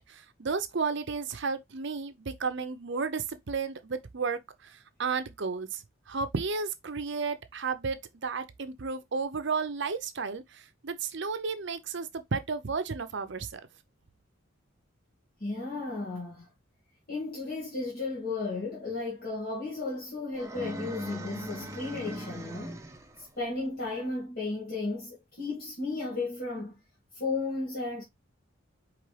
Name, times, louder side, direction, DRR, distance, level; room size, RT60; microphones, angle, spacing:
voice 1, 0.0-13.6, right 4 dB, 60° right, 0.6 m, -33 dB
voice 2, 15.4-16.5 17.1-22.8 23.2-26.8 27.1-28.0, left 3 dB, 50° left, 1.9 m, -34 dB
sound 1, 20.3-23.2, equal, 15° right, 0.7 m, -40 dB
4.9 x 3.2 x 3.2 m
head